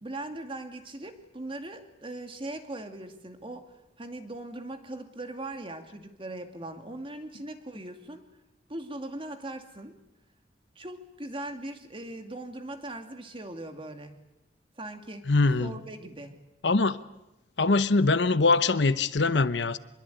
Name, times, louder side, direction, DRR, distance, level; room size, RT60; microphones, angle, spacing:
voice 1, 0.0-3.7 4.0-8.2 8.7-10.0 10.8-14.1 14.8-15.3 15.6-16.4, right 1 dB, 30° right, 6 dB, 2.4 m, -40 dB
voice 2, 15.3-15.7 16.6-17.0 17.6-19.8, left 3 dB, 75° left, 14 dB, 0.9 m, -23 dB
25.0 x 22.0 x 9.2 m, 0.96 s
head